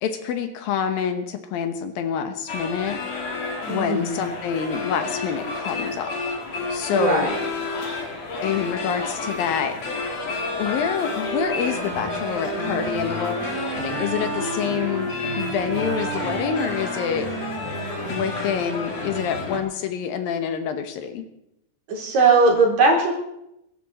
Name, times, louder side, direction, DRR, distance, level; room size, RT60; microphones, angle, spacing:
voice 1, 0.0-3.0 3.7-6.1 6.7-7.3 8.4-9.8 10.6-13.5 13.8-17.3 18.1-21.2, left 7 dB, 75° left, 8 dB, 2.9 m, -27 dB
sound 1, 2.5-19.6, left 3 dB, 45° left, 3.6 m, -30 dB
voice 2, 3.7-4.2 6.9-7.4 21.9-23.1, right 3 dB, 50° right, -1 dB, 4.9 m, -19 dB
sound 2, 11.7-19.0, right 8 dB, 80° right, 3.3 m, -35 dB
23.0 x 12.5 x 4.2 m, 0.82 s
omnidirectional pair, 4.3 m